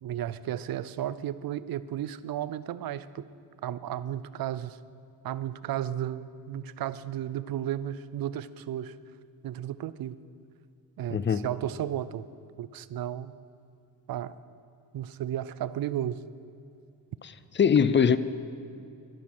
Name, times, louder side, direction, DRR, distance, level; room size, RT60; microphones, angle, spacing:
voice 1, 0.0-3.2 3.6-4.8 5.2-9.0 9.4-10.2 11.0-12.3 12.6-13.3 14.1-14.4 14.9-16.2, right 11 dB, 65° right, 16 dB, 0.6 m, -33 dB
voice 2, 11.1-11.5 17.5-18.2, left 7 dB, 30° left, 15 dB, 0.6 m, -21 dB
12.0 x 11.0 x 6.1 m, 2.6 s
cardioid pair, 85°, 38 cm